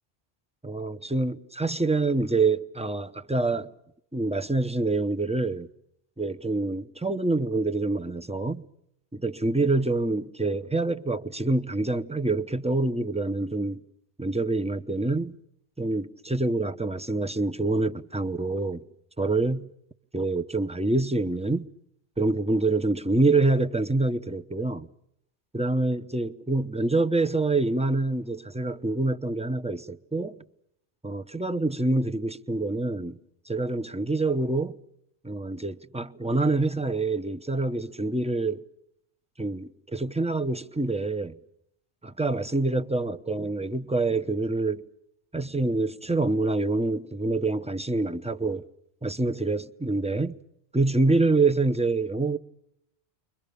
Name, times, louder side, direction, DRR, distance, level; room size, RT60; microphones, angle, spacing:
voice 1, 0.6-3.7 4.1-5.7 6.2-8.6 9.1-13.8 14.2-15.3 15.8-18.8 19.2-19.7 20.1-21.6 22.2-24.9 25.5-30.4 31.0-33.2 33.5-34.8 35.2-38.6 39.4-41.4 42.0-44.8 45.3-48.6 49.0-50.4 50.7-52.4, right 2 dB, 5° right, 0.8 m, -26 dB
30.0 x 24.0 x 6.8 m
omnidirectional pair, 1.1 m